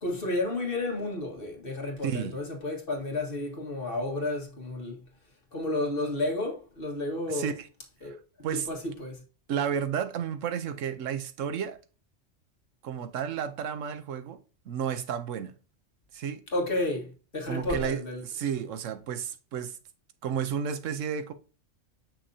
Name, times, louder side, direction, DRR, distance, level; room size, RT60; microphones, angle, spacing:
voice 1, 0.0-5.0 5.5-7.5 8.0-8.2 8.5-9.2 16.5-18.2, left 2 dB, 50° left, 1.8 m, -31 dB
voice 2, 2.0-2.3 7.3-7.7 8.0-8.2 8.4-8.7 9.5-11.8 12.8-14.4 14.7-15.5 16.1-16.4 17.5-19.8 20.2-21.3, right 8 dB, 85° right, 1.1 m, -32 dB
6.7 x 5.9 x 2.7 m
omnidirectional pair, 1.3 m